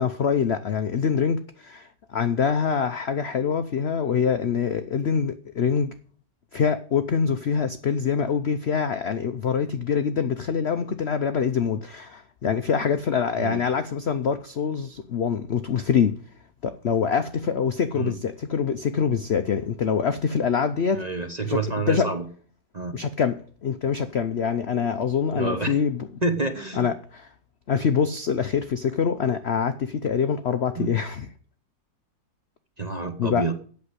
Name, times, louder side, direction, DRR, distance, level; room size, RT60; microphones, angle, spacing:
voice 1, 0.0-5.9 6.5-16.1 16.6-21.1 21.4-21.6 21.9-22.1 22.9-26.1 26.7-27.3 27.7-31.3 33.2-33.5, left 6 dB, 65° left, 0.6 m, -25 dB
voice 2, 20.9-22.3 22.7-23.0 25.3-25.8 26.2-26.9 30.8-30.9 32.8-33.5, right 3 dB, 30° right, 0.9 m, -28 dB
8.6 x 6.9 x 8.1 m
omnidirectional pair, 2.0 m